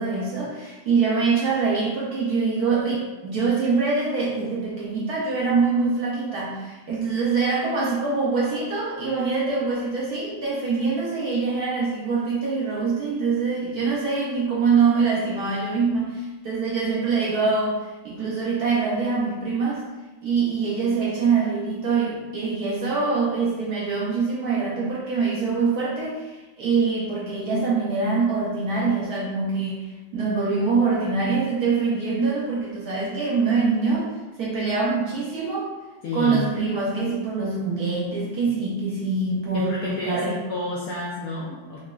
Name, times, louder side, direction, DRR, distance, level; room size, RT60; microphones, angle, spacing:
voice 1, 0.0-17.8 18.0-19.8 20.2-29.8 30.1-34.1 34.4-35.7 36.1-40.4, right 4 dB, 70° right, -5 dB, 0.9 m, -24 dB
voice 2, 36.0-36.5 39.5-41.8, left 2 dB, 80° left, -3 dB, 0.8 m, -30 dB
4.9 x 2.2 x 2.4 m, 1.1 s
omnidirectional pair, 2.1 m